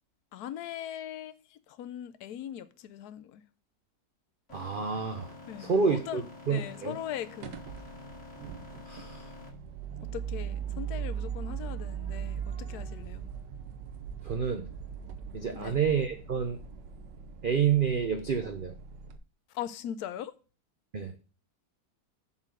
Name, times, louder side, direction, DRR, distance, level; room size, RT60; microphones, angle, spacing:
voice 1, 0.3-3.4 5.5-6.2 6.5-7.6 10.1-13.3 15.5-15.8 19.5-20.3, left 10 dB, 70° left, 1.1 m, -40 dB
sound 1, 4.5-9.5, left 3 dB, 40° left, 2.7 m, -48 dB
voice 2, 4.5-5.3 5.6-6.9 8.9-9.3 14.2-14.6 15.3-16.6 17.4-18.7 20.9-21.1, right 6 dB, 55° right, 0.5 m, -29 dB
sound 2, 7.4-19.2, right 8 dB, 75° right, 1.4 m, -39 dB
7.3 x 4.2 x 6.2 m
omnidirectional pair, 1.9 m